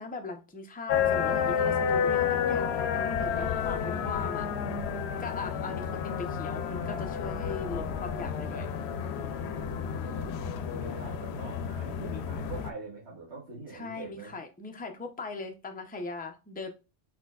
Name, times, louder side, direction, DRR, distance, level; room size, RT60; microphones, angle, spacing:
voice 1, 0.0-4.5 5.2-8.7 9.1-9.5 13.7-16.7, left 3 dB, 10° left, 4 dB, 0.5 m, -39 dB
sound 1, 0.9-12.7, left 7 dB, 80° left, 0.8 m, -30 dB
voice 2, 9.1-14.4, right 3 dB, 85° right, -8 dB, 2.0 m, -44 dB
4.4 x 4.4 x 2.3 m, 0.29 s
omnidirectional pair, 1.1 m